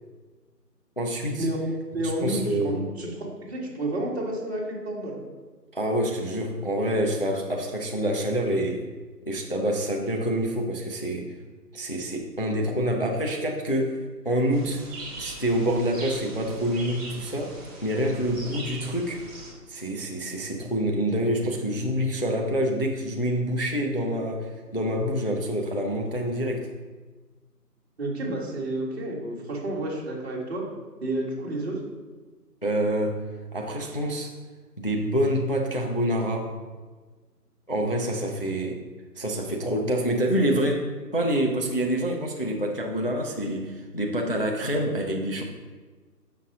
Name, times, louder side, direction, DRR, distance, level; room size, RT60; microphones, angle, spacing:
voice 1, 1.0-1.5 2.0-2.7 5.7-8.9 9.3-11.3 11.7-14.0 14.2-14.8 15.2-19.2 19.7-26.7 32.6-33.2 33.5-34.3 34.8-36.5 37.7-38.8 39.2-45.4, equal, 35° left, 1 dB, 0.5 m, -27 dB
voice 2, 1.9-5.2 28.0-30.6 31.0-31.8, right 1 dB, 40° right, -3 dB, 1.8 m, -30 dB
sound 1, 14.5-19.5, right 2 dB, 25° right, 1.7 m, -41 dB
6.5 x 5.8 x 3.6 m, 1.4 s
hypercardioid pair, 165°, 49 cm